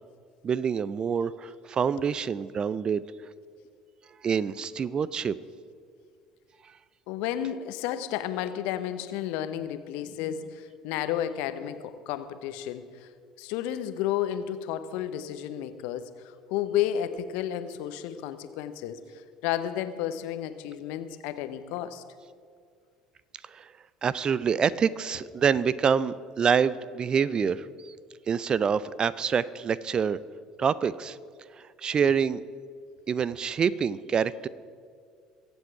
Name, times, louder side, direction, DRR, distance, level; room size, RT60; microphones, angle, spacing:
voice 1, 0.4-3.0 4.2-5.4 23.4-23.7 24.0-27.9 28.3-30.2 30.6-31.2 31.6-32.4 33.1-34.5, right 6 dB, 35° right, 18 dB, 0.5 m, -26 dB
voice 2, 7.1-13.1 13.4-22.0, left 11 dB, 65° left, 11 dB, 0.8 m, -32 dB
22.5 x 8.2 x 4.7 m, 2.1 s
figure-of-eight pair, 60°, 2 cm